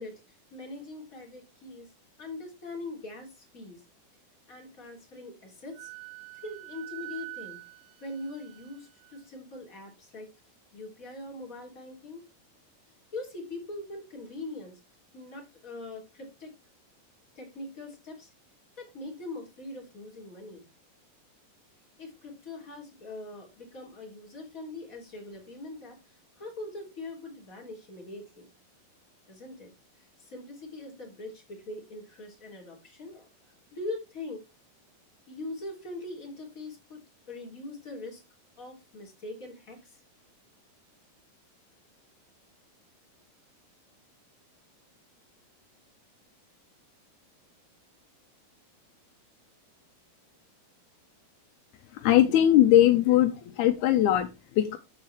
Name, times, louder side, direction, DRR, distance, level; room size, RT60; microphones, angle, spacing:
voice 1, 0.0-1.9 2.2-3.8 4.5-5.9 6.3-7.6 8.0-10.3 10.7-12.3 13.1-14.8 15.1-16.5 17.3-18.3 18.8-20.6 22.0-28.5 29.3-33.3 33.7-34.4 35.3-38.2 38.6-40.0, left 2 dB, 25° left, 3.3 m, -42 dB
Wind instrument woodwind instrument, 5.7-9.2, right 29 dB, 80° right, 2.1 m, -45 dB
voice 2, 51.9-54.8, left 12 dB, 80° left, 1.7 m, -21 dB
13.5 x 4.6 x 3.4 m
omnidirectional pair, 4.3 m